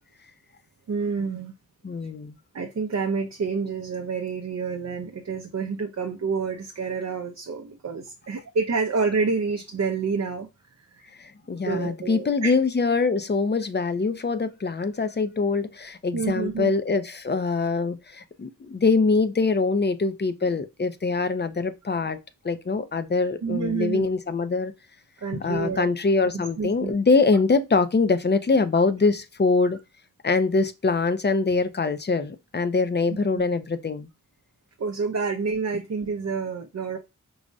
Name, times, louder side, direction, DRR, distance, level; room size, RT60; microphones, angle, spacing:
voice 1, 0.9-1.5 2.5-10.5 11.7-12.5 16.1-16.7 23.4-24.0 25.2-25.9 26.3-26.9 29.7-29.8 33.1-33.2 34.8-37.0, right 5 dB, 55° right, 0.5 m, -28 dB
voice 2, 1.8-2.4 11.2-22.2 22.4-24.7 25.3-29.8 30.2-34.1, left 4 dB, 35° left, 0.4 m, -23 dB
4.7 x 2.1 x 2.5 m
wide cardioid pair, 55°, 33 cm